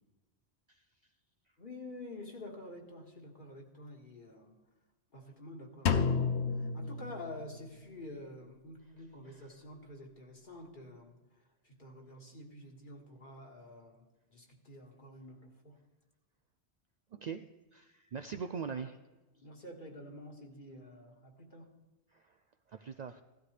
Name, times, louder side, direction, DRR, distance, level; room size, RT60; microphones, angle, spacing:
voice 1, 1.6-4.5 5.1-11.2 11.6-14.0 14.3-15.8 18.7-18.8 19.4-21.7, left 1 dB, 50° left, 1 dB, 1.9 m, -49 dB
Drum, 5.9-7.8, left 5 dB, 85° left, 1.0 m, -31 dB
voice 2, 17.1-19.0 22.1-22.2 22.7-23.2, right 6 dB, 55° right, 8 dB, 0.5 m, -41 dB
16.0 x 12.5 x 3.3 m, 1.2 s
omnidirectional pair, 1.1 m